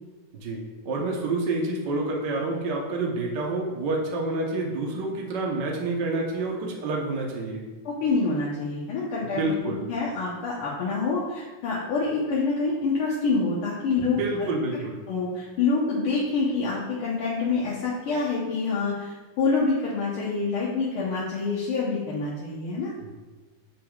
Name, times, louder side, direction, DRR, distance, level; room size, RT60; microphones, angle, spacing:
voice 1, 0.3-7.7 9.3-9.9 14.0-15.0 23.0-23.1, right 2 dB, 60° right, -1 dB, 1.1 m, -28 dB
voice 2, 7.8-14.2 15.1-22.9, left 4 dB, 60° left, -6 dB, 1.6 m, -26 dB
9.3 x 6.8 x 2.4 m, 1.3 s
omnidirectional pair, 3.4 m